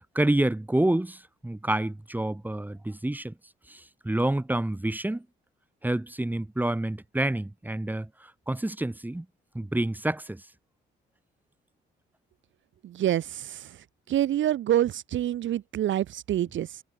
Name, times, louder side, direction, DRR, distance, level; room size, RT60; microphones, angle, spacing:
voice 1, 0.1-3.3 3.7-5.3 5.8-9.3 9.5-10.4, right 1 dB, 10° right, 1.9 m, -28 dB
voice 2, 12.8-16.8, right 12 dB, 70° right, 2.6 m, -27 dB
cardioid pair, 90°, 20 cm